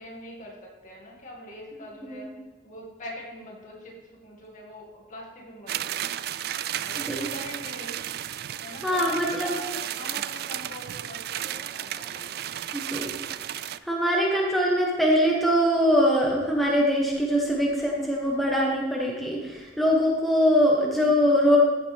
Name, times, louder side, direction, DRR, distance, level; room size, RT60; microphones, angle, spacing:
voice 1, 0.0-2.3 2.6-6.0 6.8-8.0 8.6-12.4, equal, 45° left, -2 dB, 2.3 m, -43 dB
sound 1, 5.7-13.8, right 11 dB, 60° right, 0.3 m, -33 dB
voice 2, 8.8-9.6 12.7-13.1 13.4-21.6, equal, ahead, -3 dB, 1.3 m, -23 dB
15.0 x 7.4 x 3.6 m, 1.3 s
head